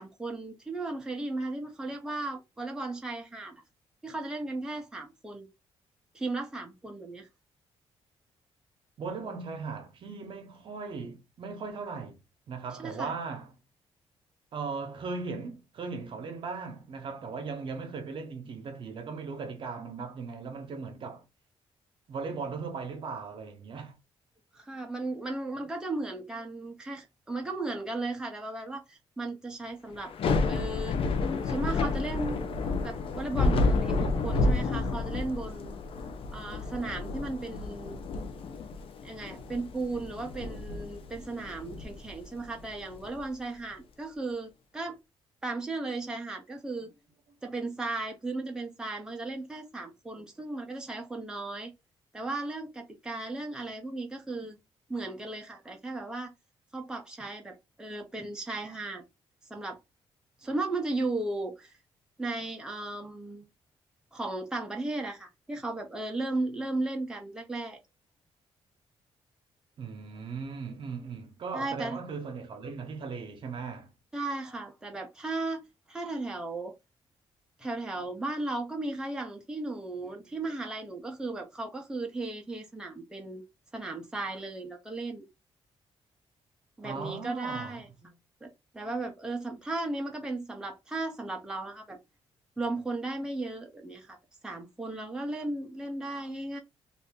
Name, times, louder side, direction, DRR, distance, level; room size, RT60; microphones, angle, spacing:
voice 1, 0.0-3.6 4.0-5.5 6.1-7.3 12.8-13.2 24.5-30.1 30.5-31.0 31.4-35.8 36.3-38.0 39.0-45.0 45.4-46.9 47.4-51.7 52.1-54.6 54.9-56.3 56.7-59.0 59.5-59.8 60.4-61.7 62.2-63.5 64.1-67.8 71.5-72.0 74.1-75.6 75.9-76.7 77.6-83.4 83.7-85.3 86.8-87.9 88.4-92.0 92.6-94.2 94.4-96.6, right 2 dB, 5° right, 0.7 m, -35 dB
voice 2, 9.0-12.2 12.5-13.6 14.5-21.2 22.1-23.9 69.8-73.9 86.8-87.8, right 4 dB, 55° right, 0.9 m, -38 dB
Thunder / Rain, 30.0-43.2, left 3 dB, 60° left, 0.6 m, -30 dB
2.7 x 2.5 x 3.6 m
cardioid pair, 135°, 10 cm